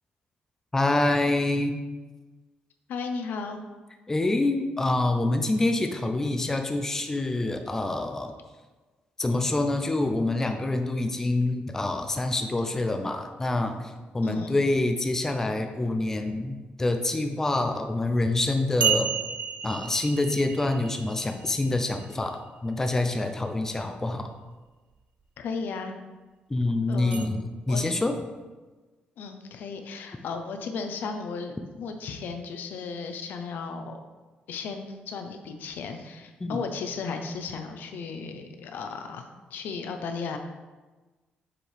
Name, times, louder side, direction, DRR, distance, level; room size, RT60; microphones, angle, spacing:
voice 1, 0.7-1.8 4.1-8.3 9.2-19.1 19.6-24.3 26.5-28.2 36.4-36.7, left 2 dB, 15° left, 5 dB, 0.5 m, -26 dB
voice 2, 2.9-3.6 14.2-14.6 25.4-25.9 26.9-27.3 27.7-27.8 29.2-34.0 34.5-40.4, left 5 dB, 75° left, 6 dB, 0.7 m, -35 dB
sound 1, 17.9-18.0 18.8-22.5 27.1-27.3, right 7 dB, 45° right, 0.4 m, -31 dB
7.4 x 4.5 x 3.4 m, 1.2 s
cardioid pair, 140°, 3 cm